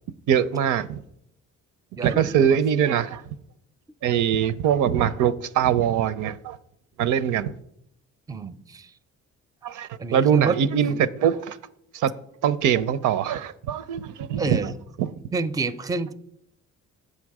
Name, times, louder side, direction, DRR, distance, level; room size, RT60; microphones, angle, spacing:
voice 1, 0.3-1.0 2.0-3.2 4.0-6.6 7.0-7.5 9.6-11.6 11.9-12.1 12.4-14.7 15.0-15.1, right 9 dB, 80° right, 0.5 m, -22 dB
voice 2, 2.0-2.6 8.3-8.9 10.0-10.6 14.4-14.7 15.3-16.1, right 4 dB, 10° right, 0.4 m, -28 dB
8.2 x 6.4 x 4.7 m
cardioid pair, 90°, 30 cm